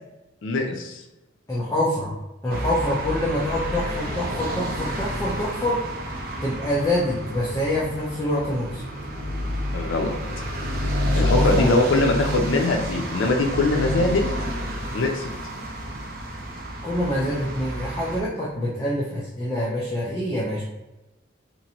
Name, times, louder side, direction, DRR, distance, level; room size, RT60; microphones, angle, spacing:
voice 1, 0.4-1.0 9.7-10.1 11.2-14.2 14.9-15.2, left 2 dB, 85° left, 3 dB, 0.5 m, -22 dB
voice 2, 1.5-2.1 2.4-5.8 6.4-8.8 11.1-11.7 16.8-20.6, left 1 dB, 15° left, -7 dB, 0.5 m, -26 dB
sound 1, 2.5-18.2, equal, 50° right, 0.5 m, -29 dB
3.0 x 2.5 x 2.7 m, 0.99 s
head